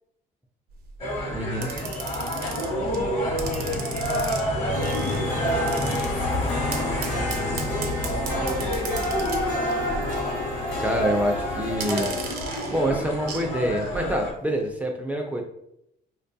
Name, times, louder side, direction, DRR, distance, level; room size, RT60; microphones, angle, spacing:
sound 1, 0.7-1.0 1.6-3.0 3.4-4.4 4.8-5.2 5.7-6.1 6.7-10.4 10.6-10.9 11.7-13.5 13.8-13.9, right 5 dB, 75° right, 0.6 m, -36 dB
sound 2, 1.0-14.3, equal, 40° left, 1.0 m, -28 dB
voice 1, 1.3-1.7 10.8-12.1 12.5-15.4, equal, 10° right, 2 dB, 0.4 m, -26 dB
voice 2, 2.2-7.4 7.8-9.0, left 2 dB, 55° left, 3 dB, 0.7 m, -40 dB
sound 3, 4.7-12.3, left 2 dB, 80° left, 1.0 m, -32 dB
4.5 x 2.2 x 2.6 m, 0.77 s
cardioid pair, 155°, 16 cm